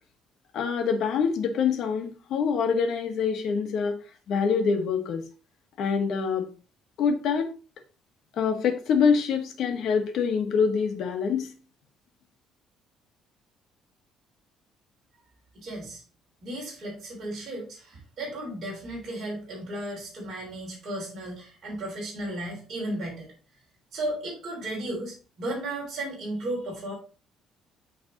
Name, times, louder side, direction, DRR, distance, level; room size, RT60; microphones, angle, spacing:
voice 1, 0.5-4.0 4.3-5.2 5.8-6.5 7.0-7.5 8.3-11.5, left 6 dB, 55° left, 5 dB, 1.2 m, -25 dB
voice 2, 15.5-16.0 16.4-23.3 23.9-26.9, right 1 dB, 40° right, -4 dB, 3.5 m, -34 dB
8.9 x 3.4 x 3.8 m, 0.36 s
cardioid pair, 165°, 0 cm